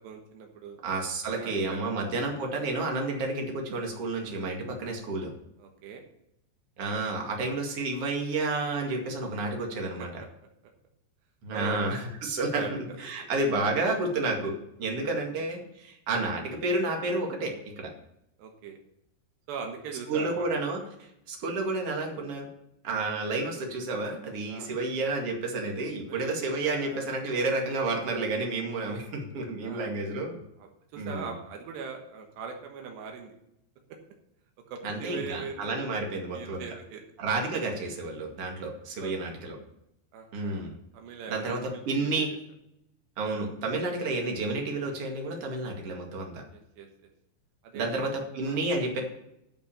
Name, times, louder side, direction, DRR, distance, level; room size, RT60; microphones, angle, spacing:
voice 1, 0.0-0.8 1.3-2.0 5.6-6.0 10.0-10.1 11.5-12.0 12.5-13.0 18.4-18.8 19.5-20.5 24.5-24.7 25.9-28.7 29.6-29.9 30.6-33.4 34.7-36.0 36.3-37.0 39.0-39.1 40.1-42.4 46.5-47.1 47.6-47.9 48.4-48.6, right 6 dB, 80° right, 3 dB, 3.4 m, -42 dB
voice 2, 0.8-5.3 6.8-10.1 11.4-14.5 14.8-17.9 20.1-20.8 21.3-22.5 22.8-30.4 31.0-31.3 34.8-36.6 37.2-39.6 40.3-40.7 41.3-42.3 43.2-46.4 47.7-49.0, right 2 dB, 40° right, 1 dB, 2.5 m, -30 dB
11.0 x 6.1 x 7.2 m, 0.80 s
omnidirectional pair, 4.9 m